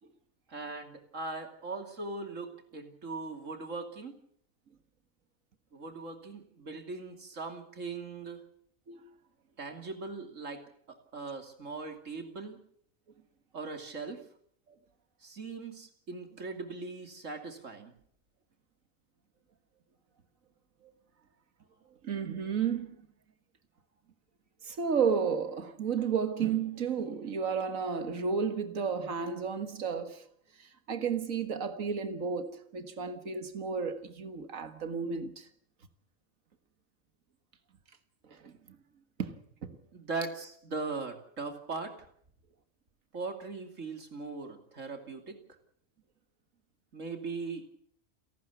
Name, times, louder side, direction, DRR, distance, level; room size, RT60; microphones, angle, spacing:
voice 1, 0.5-4.2 5.7-8.4 9.6-12.6 13.5-14.2 15.2-17.9 39.9-41.9 43.1-45.4 46.9-47.6, right 3 dB, 75° right, 3.1 m, -40 dB
voice 2, 22.0-22.9 24.6-30.2 30.9-35.5 38.3-38.5 39.2-39.8, right 6 dB, 90° right, 2.0 m, -32 dB
29.5 x 12.0 x 8.2 m
omnidirectional pair, 1.3 m